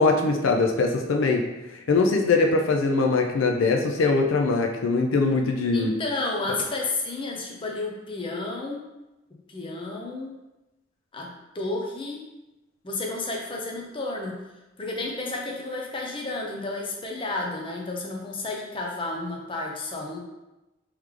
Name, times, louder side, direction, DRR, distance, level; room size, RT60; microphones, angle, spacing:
voice 1, 0.0-1.5 1.7-5.9, left 3 dB, 85° left, 3 dB, 0.5 m, -22 dB
voice 2, 5.7-8.9 9.5-10.4 11.1-12.3 12.8-14.4 14.8-20.2, left 2 dB, 25° left, -1 dB, 0.6 m, -31 dB
3.2 x 3.1 x 3.7 m, 0.99 s
head